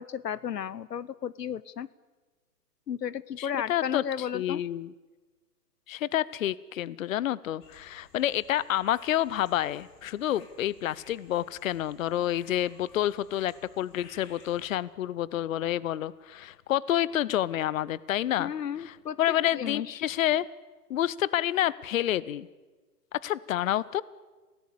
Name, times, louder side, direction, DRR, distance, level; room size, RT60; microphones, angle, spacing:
voice 1, 0.0-1.9 2.9-4.6 18.4-19.2 19.4-20.0, left 9 dB, 80° left, 20 dB, 1.0 m, -34 dB
voice 2, 3.4-4.9 5.9-18.5 18.8-20.4 20.9-22.5 23.1-24.0, left 12 dB, 55° left, 21 dB, 1.0 m, -29 dB
sound 1, 7.6-14.8, left 4 dB, 35° left, 5.3 m, -56 dB
27.5 x 18.5 x 8.4 m, 1.3 s
hypercardioid pair, 130°, 48 cm